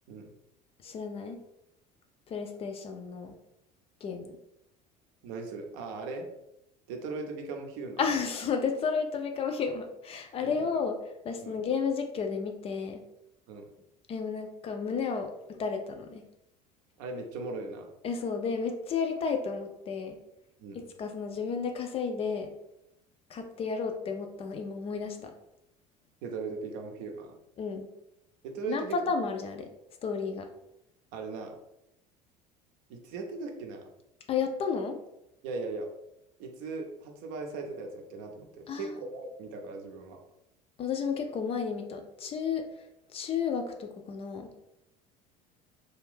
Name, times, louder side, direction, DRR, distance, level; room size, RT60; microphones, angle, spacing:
voice 1, 0.8-1.4 2.3-3.3 4.0-4.3 8.0-11.0 11.2-13.0 14.1-16.2 18.0-20.2 20.7-22.5 23.3-25.3 27.6-27.9 28.7-29.7 30.0-30.5 34.3-35.0 38.7-39.0 40.8-42.7 43.1-44.5, left 5 dB, 30° left, 5 dB, 0.3 m, -32 dB
voice 2, 5.2-6.3 6.9-8.0 10.4-10.7 11.4-11.6 13.5-13.7 17.0-17.9 20.6-20.8 26.2-27.4 28.4-29.0 31.1-31.6 32.9-33.9 35.4-35.9 36.4-40.2, right 3 dB, 55° right, 3 dB, 0.6 m, -38 dB
2.4 x 2.2 x 3.3 m, 0.84 s
figure-of-eight pair, 65°, 21 cm